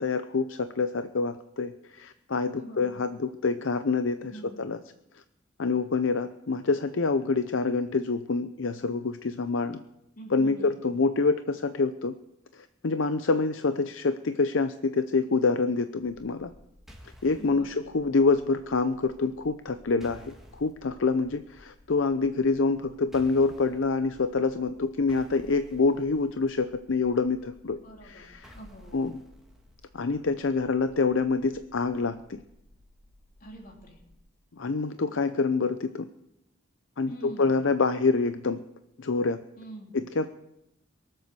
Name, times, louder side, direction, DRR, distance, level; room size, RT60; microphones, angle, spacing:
voice 1, 0.0-4.3 4.6-4.8 5.6-9.8 10.3-12.1 12.5-16.5 17.2-27.8 28.0-28.5 28.9-29.2 29.9-32.4 34.6-36.1 37.0-38.6 39.0-39.4 39.9-40.3, left 4 dB, 65° left, 11 dB, 0.6 m, -26 dB
voice 2, 2.5-3.1 4.2-4.7 10.1-10.9 17.4-17.9 27.7-29.0 33.4-34.0 37.1-37.7 39.6-40.0, right 1 dB, 45° left, 1 dB, 3.3 m, -45 dB
sound 1, 16.0-34.1, left 1 dB, 15° left, 2.6 m, -58 dB
sound 2, 16.9-17.6 20.0-20.7 23.1-23.8 25.1-26.5 28.4-29.9, equal, ahead, 2.0 m, -52 dB
23.0 x 7.9 x 6.9 m, 0.87 s
head